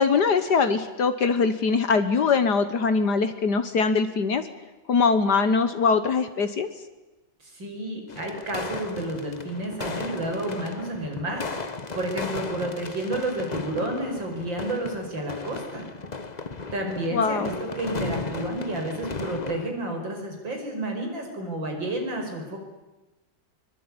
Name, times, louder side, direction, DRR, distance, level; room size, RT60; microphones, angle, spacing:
voice 1, 0.0-4.4 4.9-6.7 17.1-17.5, left 5 dB, 65° left, 10 dB, 1.9 m, -22 dB
voice 2, 7.4-15.9 16.7-22.6, right 1 dB, 90° right, 3 dB, 6.2 m, -31 dB
sound 1, 8.1-19.7, left 3 dB, 25° left, 1.2 m, -35 dB
23.5 x 22.5 x 9.8 m, 1.1 s
omnidirectional pair, 2.0 m